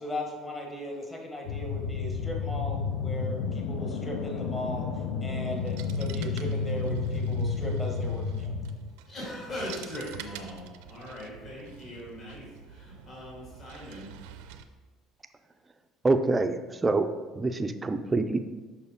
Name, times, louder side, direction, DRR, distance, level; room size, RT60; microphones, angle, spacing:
voice 1, 0.0-4.8 5.2-8.5, equal, 20° left, 0 dB, 1.4 m, -37 dB
sound 1, 1.5-8.8, left 5 dB, 80° left, 0.5 m, -31 dB
sound 2, 5.5-14.6, right 9 dB, 90° right, 0.5 m, -48 dB
voice 2, 9.0-14.1, left 1 dB, 40° left, -6 dB, 2.3 m, -40 dB
voice 3, 16.0-17.1 17.3-18.4, right 3 dB, 15° right, 7 dB, 0.4 m, -26 dB
6.5 x 5.7 x 3.6 m, 1.3 s
cardioid pair, 130°, 0 cm